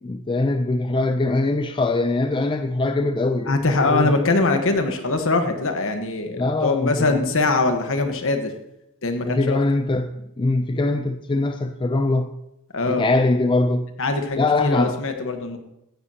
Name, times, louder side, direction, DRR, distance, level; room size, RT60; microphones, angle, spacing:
voice 1, 0.0-4.3 6.4-7.3 9.2-12.4 12.9-13.9 14.4-15.0, left 2 dB, 20° left, 0.4 m, -22 dB
voice 2, 3.5-8.5 9.0-9.6 12.7-13.0 14.0-15.6, left 3 dB, 65° left, 1.3 m, -22 dB
15.0 x 10.0 x 2.9 m
head